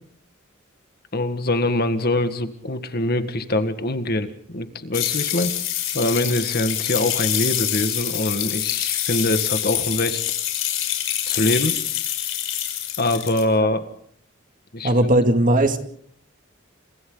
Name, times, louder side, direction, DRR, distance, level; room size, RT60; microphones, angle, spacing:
voice 1, 1.1-5.5 5.9-10.2 11.3-11.7 13.0-13.8 14.7-14.9, left 1 dB, 50° left, 9 dB, 1.8 m, -23 dB
sound 1, 4.9-13.4, left 12 dB, 75° left, 6.5 m, -25 dB
voice 2, 14.8-15.8, right 1 dB, 40° right, 6 dB, 2.4 m, -17 dB
30.0 x 28.0 x 4.0 m, 0.63 s
head